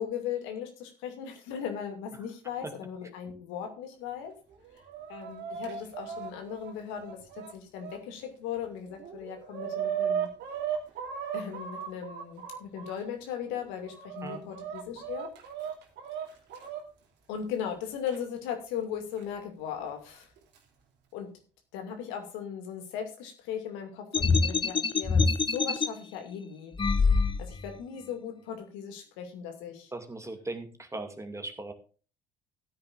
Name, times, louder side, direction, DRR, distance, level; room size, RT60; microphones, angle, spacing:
voice 1, 0.0-4.3 5.1-10.3 11.3-15.3 17.3-20.3 21.1-21.3 21.7-26.7 27.0-29.9, left 8 dB, 65° left, 5 dB, 2.5 m, -38 dB
Chicken rooster, 4.5-8.0 8.5-8.6 8.9-12.9 13.6-16.8 18.1-18.2 19.2-19.3 20.2-20.6, right 8 dB, 55° right, 2.9 m, -36 dB
sound 1, 24.1-25.9 26.8-27.7, left 4 dB, 25° left, 0.9 m, -25 dB
voice 2, 29.9-31.7, right 2 dB, 15° right, 6 dB, 2.4 m, -39 dB
16.5 x 9.8 x 2.6 m, 0.36 s
hypercardioid pair, 60°, 21 cm